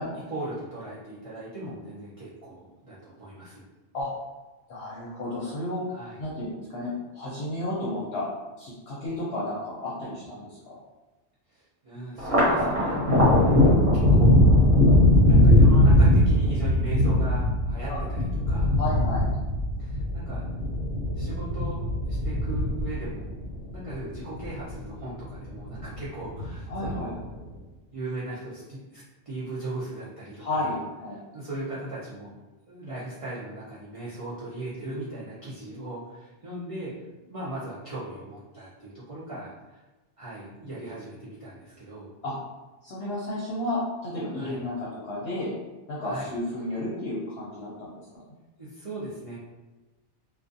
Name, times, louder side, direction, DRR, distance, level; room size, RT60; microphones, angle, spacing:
voice 1, 0.3-3.7 5.9-6.2 11.5-13.0 13.9-14.4 14.9-18.2 18.5-18.7 19.8-20.5 21.1-23.3 23.7-27.2 27.9-30.7 31.3-32.4 32.7-36.9 37.2-39.8 40.2-42.1 44.3-44.6 46.0-46.3 48.6-49.4, right 2 dB, 45° right, -9 dB, 0.4 m, -38 dB
voice 2, 4.7-5.8 6.2-8.3 8.6-10.7 17.9-18.0 18.8-19.2 26.7-27.1 30.4-31.2 42.2-42.4 42.8-45.5 45.9-47.9, left 1 dB, 60° left, -7 dB, 0.8 m, -32 dB
Thunder, 12.2-24.8 25.2-26.0 26.4-27.2, left 1 dB, 65° right, 1.2 m, -20 dB
2.4 x 2.4 x 2.5 m, 1.2 s
omnidirectional pair, 1.2 m